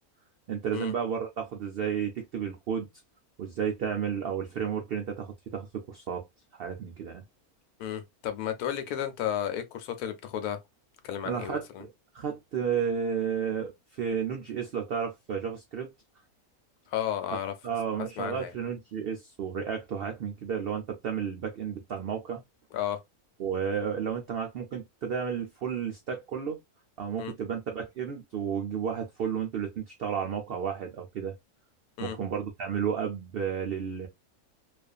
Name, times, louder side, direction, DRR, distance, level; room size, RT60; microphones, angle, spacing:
voice 1, 0.5-2.9 3.4-6.3 6.5-7.2 11.2-11.9 12.1-15.9 17.6-22.4 23.4-26.6 27.0-31.3 32.0-34.1, right 7 dB, 80° right, 0.5 m, -32 dB
voice 2, 7.8-10.6 11.0-11.8 16.9-17.5 18.2-18.5 22.7-23.0 27.2-27.3 32.0-32.2, left 10 dB, 85° left, 1.1 m, -33 dB
2.5 x 2.4 x 2.3 m
omnidirectional pair, 1.6 m